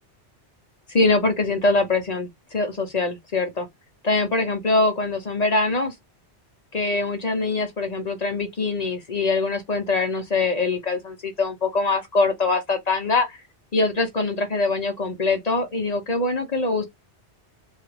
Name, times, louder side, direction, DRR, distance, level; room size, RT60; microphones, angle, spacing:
voice 1, 0.9-3.7 4.0-5.9 6.7-13.4 13.7-16.8, left 3 dB, 40° left, 0.7 m, -23 dB
3.2 x 2.3 x 3.2 m
omnidirectional pair, 1.2 m